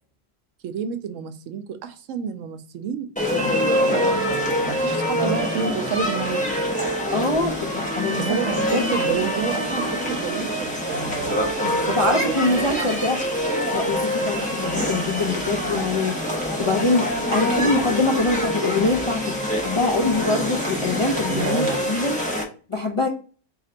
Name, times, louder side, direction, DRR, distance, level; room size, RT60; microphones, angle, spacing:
voice 1, 0.6-4.3 4.6-6.5 8.1-8.6 8.9-13.0 13.9-14.2 21.1-21.8, right 7 dB, 80° right, 9 dB, 1.0 m, -30 dB
sound 1, 3.2-22.4, equal, 5° left, 1.1 m, -25 dB
voice 2, 7.1-8.4 8.7-8.9 11.9-13.2 13.7-16.1 16.6-22.1 22.7-23.1, left 2 dB, 45° left, 1 dB, 0.4 m, -24 dB
4.2 x 2.8 x 3.8 m, 0.38 s
omnidirectional pair, 1.3 m